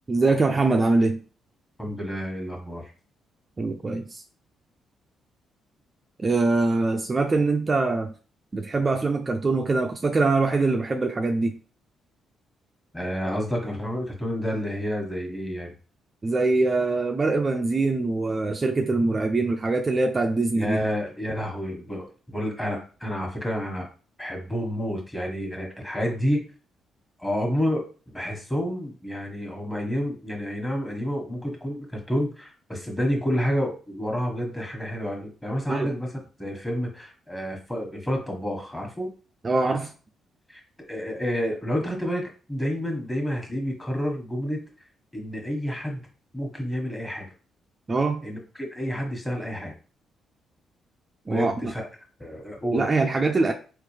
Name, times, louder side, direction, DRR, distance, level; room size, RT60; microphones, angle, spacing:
voice 1, 0.1-1.2 3.6-4.2 6.2-8.1 8.5-11.6 16.2-20.8 35.7-35.9 39.4-39.9 47.9-48.3 51.3-51.7 52.7-53.5, right 3 dB, 30° right, 0.4 m, -23 dB
voice 2, 1.8-2.9 12.9-15.7 20.5-23.9 24.2-26.5 27.2-27.9 28.1-36.1 36.4-39.1 40.5-44.6 45.1-46.1 46.3-47.3 48.2-49.7 51.3-51.9 52.2-52.9, equal, 15° left, 1.4 m, -29 dB
3.7 x 2.9 x 3.3 m
cardioid pair, 90°, 0 cm